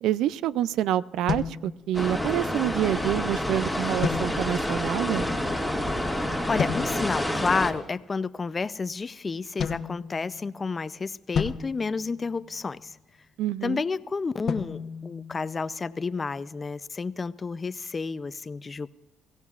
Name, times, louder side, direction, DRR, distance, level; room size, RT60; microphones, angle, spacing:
voice 1, 0.0-5.3 13.4-13.8, right 12 dB, 85° right, 18 dB, 0.4 m, -27 dB
sound 1, 1.3-2.4 4.0-4.8 6.6-7.2 9.6-10.7 11.3-12.8 14.5-16.0, left 7 dB, 60° left, 0.9 m, -33 dB
sound 2, 1.9-7.7, left 1 dB, 5° right, 2.0 m, -28 dB
voice 2, 6.2-12.9 13.6-18.9, left 4 dB, 30° left, 15 dB, 0.5 m, -30 dB
23.0 x 16.5 x 2.4 m, 1.1 s
cardioid pair, 90°, 0 cm